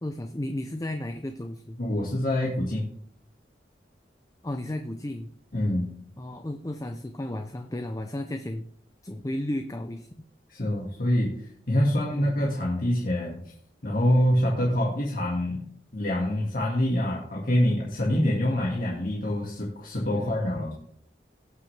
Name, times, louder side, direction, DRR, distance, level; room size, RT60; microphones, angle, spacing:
voice 1, 0.0-1.8 4.4-5.3 6.2-8.6 9.0-10.1 12.1-12.4 20.1-20.7, left 1 dB, 20° left, 6 dB, 0.6 m, -34 dB
voice 2, 1.8-2.9 5.5-5.9 10.5-11.3 11.7-13.4 13.8-15.6 15.9-20.7, left 1 dB, 55° left, -4 dB, 2.0 m, -25 dB
18.5 x 6.5 x 3.4 m, 0.63 s
head